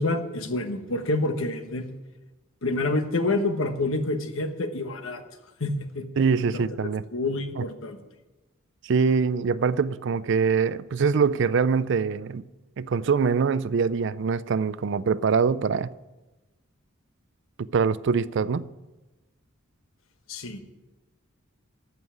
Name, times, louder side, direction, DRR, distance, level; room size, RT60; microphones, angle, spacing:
voice 1, 0.0-1.9 2.6-5.2 5.6-6.1 6.5-6.7 7.1-8.0 20.3-20.6, left 2 dB, 70° left, 1.3 m, -27 dB
voice 2, 6.2-7.0 7.6-7.7 8.8-12.4 12.8-15.9 17.6-18.7, right 5 dB, 60° right, 0.4 m, -24 dB
14.0 x 5.6 x 9.1 m
head